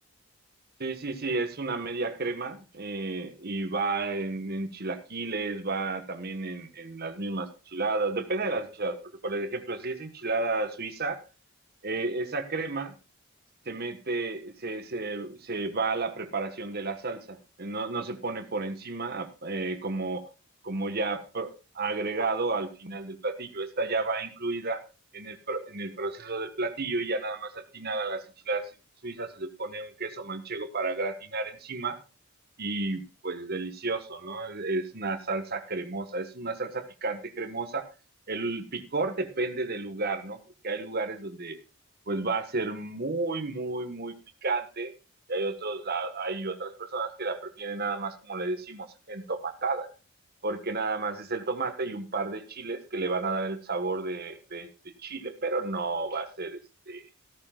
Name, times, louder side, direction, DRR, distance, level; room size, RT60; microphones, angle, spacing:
voice 1, 0.8-11.2 11.8-12.9 13.6-20.2 20.6-21.5 21.7-24.8 25.1-28.7 29.0-32.0 32.6-37.8 38.3-41.6 42.1-44.1 44.4-44.9 45.3-49.9 50.4-56.6 56.9-57.0, right 3 dB, 45° right, 8 dB, 1.4 m, -32 dB
14.5 x 13.5 x 2.4 m, 0.32 s
head